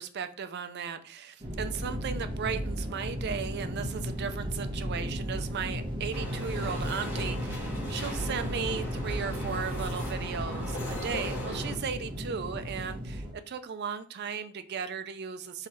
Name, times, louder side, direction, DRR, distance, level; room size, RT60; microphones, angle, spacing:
voice 1, 0.0-15.7, right 6 dB, 50° right, 9 dB, 0.4 m, -36 dB
sound 1, 1.4-13.3, equal, 20° right, 1.1 m, -35 dB
sound 2, 6.1-11.7, equal, 60° left, 2.1 m, -38 dB
3.7 x 3.1 x 4.2 m, 0.44 s
head